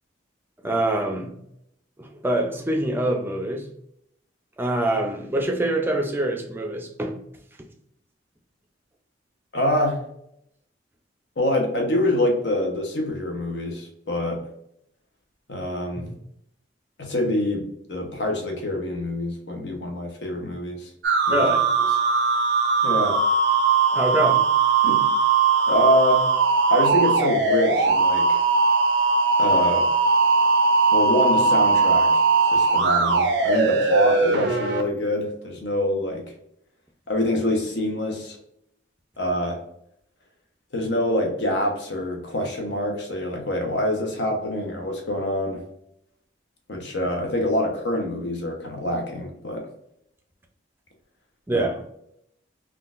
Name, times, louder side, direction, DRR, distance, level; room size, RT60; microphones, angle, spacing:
voice 1, 0.6-1.4 2.0-3.7 4.6-7.2 16.0-16.2 21.3-21.7 23.9-24.5 51.5-51.8, right 1 dB, 10° right, 0.4 m, -25 dB
voice 2, 9.5-10.0 11.4-14.4 15.5-16.1 17.0-20.9 21.3-21.5 22.8-23.2 24.8-25.0 25.7-26.3 26.7-28.4 29.4-29.9 30.9-32.1 32.5-36.2 37.1-38.4 39.2-39.6 40.7-45.6 46.7-49.7 51.5-51.7, left 1 dB, 65° left, 0.9 m, -25 dB
sound 1, 21.0-34.8, right 4 dB, 65° right, 0.5 m, -20 dB
3.7 x 2.4 x 2.5 m
head